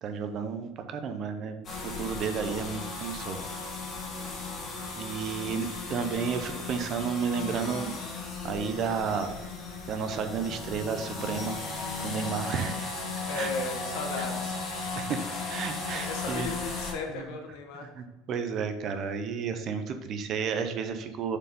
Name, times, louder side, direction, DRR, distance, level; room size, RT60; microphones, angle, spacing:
voice 1, 0.0-3.4 5.0-7.9 8.4-9.3 9.9-11.6 12.0-12.9 13.3-13.5 14.9-16.5 17.1-17.2 17.8-21.4, right 6 dB, 35° right, 8 dB, 0.6 m, -32 dB
sound 1, 1.6-16.9, left 3 dB, 30° left, 1.6 m, -36 dB
voice 2, 13.3-14.6 16.1-17.9, left 4 dB, 65° left, 2 dB, 1.5 m, -35 dB
6.8 x 4.8 x 5.2 m, 1.1 s
cardioid pair, 180°, 0 cm